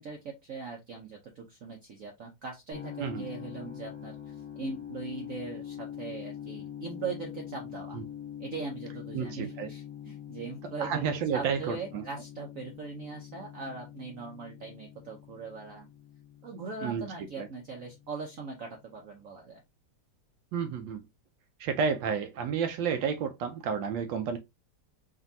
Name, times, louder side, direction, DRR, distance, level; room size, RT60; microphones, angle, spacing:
voice 1, 0.0-8.0 8.4-11.0 11.3-15.9 16.4-19.6, right 4 dB, 60° right, 0.9 m, -40 dB
sound 1, 2.7-18.6, left 10 dB, 25° left, 1.1 m, -44 dB
voice 2, 9.1-9.7 10.8-12.0 16.8-17.5 20.5-21.0 21.6-24.4, right 6 dB, 75° right, 1.3 m, -31 dB
5.1 x 2.6 x 2.6 m
omnidirectional pair, 2.1 m